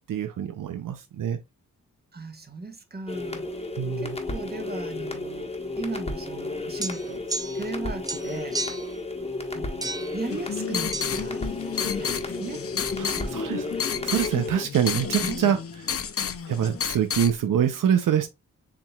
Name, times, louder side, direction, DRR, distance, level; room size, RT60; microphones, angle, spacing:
voice 1, 0.0-1.4 3.8-4.2 13.0-13.7 14.0-15.6 16.5-18.3, right 9 dB, 80° right, 0.6 m, -25 dB
voice 2, 2.1-3.5 4.0-5.5 5.8-7.3 7.5-8.6 9.5-11.5 11.8-12.7 13.0-13.9 15.2-15.4, right 3 dB, 30° right, 1.2 m, -37 dB
sound 1, 3.1-14.7, left 2 dB, 20° left, 1.3 m, -33 dB
sound 2, 6.8-7.8 8.0-8.9 9.8-10.2 10.9-11.1, right 2 dB, 10° right, 0.5 m, -33 dB
sound 3, 10.3-17.3, left 7 dB, 45° left, 0.6 m, -31 dB
7.1 x 2.9 x 2.3 m
cardioid pair, 65°, 32 cm